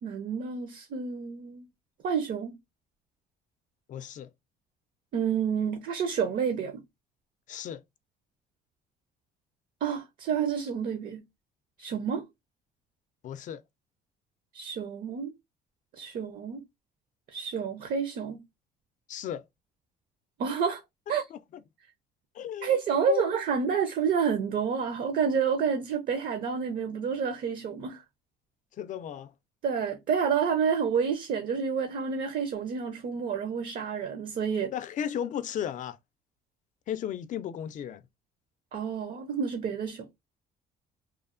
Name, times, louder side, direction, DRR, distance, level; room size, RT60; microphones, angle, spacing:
voice 1, 0.0-1.7 2.0-2.6 5.1-6.8 9.8-11.2 11.8-12.3 14.5-15.3 15.9-16.6 17.3-18.4 20.4-20.8 21.1-21.2 22.6-28.0 29.6-34.7 38.7-40.1, right 6 dB, 55° right, 0.6 m, -29 dB
voice 2, 3.9-4.3 7.5-7.8 13.2-13.6 19.1-19.4 21.3-21.4 22.3-22.8 23.1-23.3 28.8-29.3 34.7-36.0 36.9-38.0, left 9 dB, 50° left, 0.4 m, -35 dB
3.0 x 2.1 x 2.4 m
cardioid pair, 110°, 17 cm